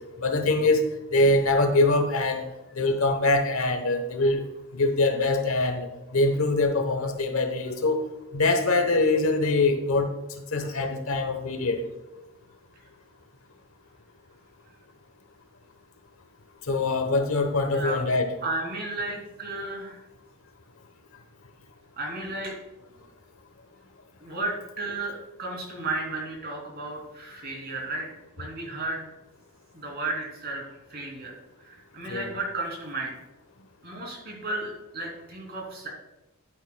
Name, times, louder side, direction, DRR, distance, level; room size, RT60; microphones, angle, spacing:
voice 1, 0.2-2.5 2.8-4.4 4.7-8.0 8.3-10.1 10.5-11.8 16.7-18.3 32.1-32.3, left 2 dB, 70° left, 7 dB, 1.1 m, -23 dB
voice 2, 17.7-18.0 18.4-20.0 22.0-22.6 24.2-28.1 28.4-29.1 29.7-31.3 31.6-33.1 33.8-35.9, right 2 dB, 45° right, -1 dB, 3.0 m, -33 dB
11.0 x 9.8 x 2.3 m, 1.0 s
head